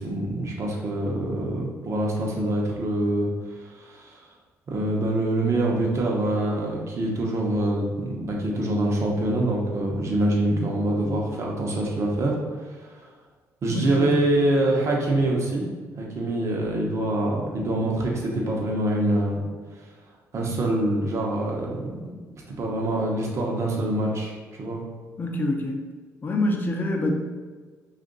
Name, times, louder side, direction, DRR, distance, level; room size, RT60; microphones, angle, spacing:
voice 1, 0.0-4.2 4.7-13.0 13.6-15.7 16.0-19.4 20.3-21.9 22.5-24.3 24.6-24.8, right 1 dB, 50° right, -1 dB, 0.8 m, -25 dB
voice 2, 10.5-11.4 13.7-14.1 25.2-25.8 26.2-27.1, left 1 dB, 35° left, 2 dB, 0.6 m, -27 dB
2.8 x 2.5 x 3.9 m, 1.4 s
cardioid pair, 90°, 6 cm